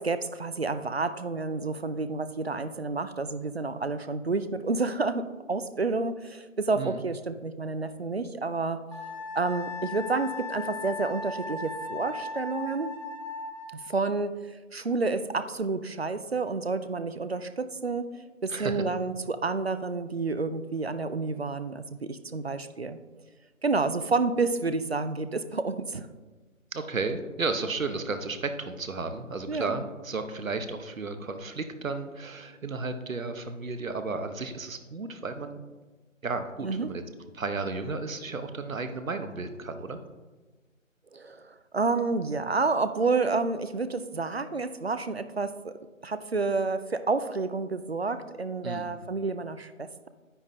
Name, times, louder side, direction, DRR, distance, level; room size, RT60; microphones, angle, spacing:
voice 1, 0.0-8.8 9.4-12.9 13.9-18.1 18.4-23.0 23.6-26.1 29.5-29.7 36.6-36.9 41.1-45.7 46.0-50.1, right 3 dB, 50° right, 12 dB, 0.5 m, -29 dB
Wind instrument woodwind instrument, 8.9-13.8, left 3 dB, 25° left, 1.0 m, -37 dB
voice 2, 18.5-18.8 26.7-35.6 36.2-37.0 37.3-40.0 48.6-48.9, right 3 dB, 80° right, 8 dB, 1.1 m, -33 dB
9.9 x 9.4 x 2.8 m, 1.2 s
figure-of-eight pair, 170°, 40 cm